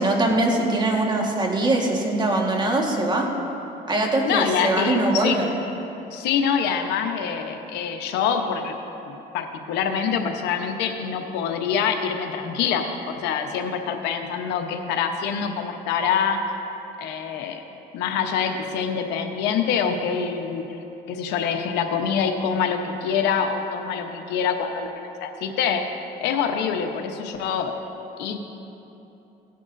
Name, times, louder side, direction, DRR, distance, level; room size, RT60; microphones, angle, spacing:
voice 1, 0.0-3.3 3.9-5.5, right 2 dB, 25° right, 0 dB, 1.5 m, -22 dB
voice 2, 4.2-5.4 6.1-8.7 9.1-16.4 17.0-17.6 17.9-20.8 21.1-25.8 26.2-27.7 28.2-28.4, left 7 dB, 90° left, 5 dB, 0.9 m, -25 dB
16.5 x 10.5 x 2.6 m, 3.0 s
cardioid pair, 110°, 17 cm